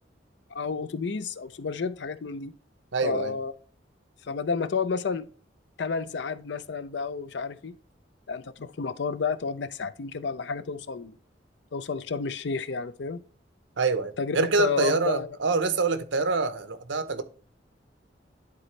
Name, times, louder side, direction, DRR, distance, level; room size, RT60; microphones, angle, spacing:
voice 1, 0.5-2.5 3.0-3.5 4.2-5.3 5.8-7.8 8.3-11.1 11.7-13.2 14.2-15.4, left 5 dB, 65° left, 0.5 m, -31 dB
voice 2, 2.9-3.4 13.8-17.2, right 4 dB, 80° right, 0.8 m, -26 dB
10.5 x 4.2 x 3.2 m
head